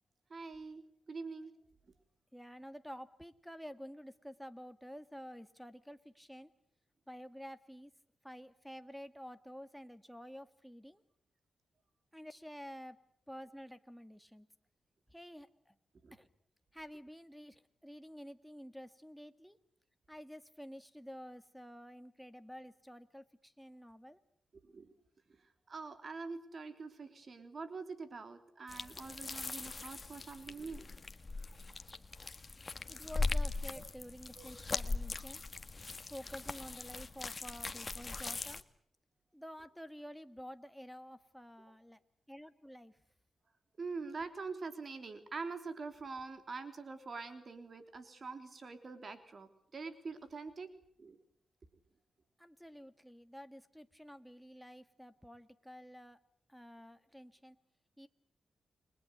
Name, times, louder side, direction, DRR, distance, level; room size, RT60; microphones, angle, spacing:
voice 1, 0.3-1.5 16.0-16.1 24.5-24.9 25.3-25.4 25.7-30.9 33.8-33.9 34.4-34.5 43.8-50.7 51.0-51.2, right 4 dB, 50° right, 9 dB, 3.5 m, -45 dB
voice 2, 2.3-6.5 7.1-7.9 8.2-11.0 12.1-13.0 13.3-14.5 15.1-15.7 16.1-16.3 16.7-19.6 20.1-24.2 32.9-35.4 36.1-38.6 39.3-42.0 42.3-43.0 52.4-56.2 56.5-57.6 58.0-58.1, equal, ahead, 12 dB, 2.0 m, -50 dB
sound 1, 28.7-38.6, left 3 dB, 35° left, 1.7 m, -40 dB
30.0 x 22.5 x 8.1 m, 0.66 s
cardioid pair, 80°, 0 cm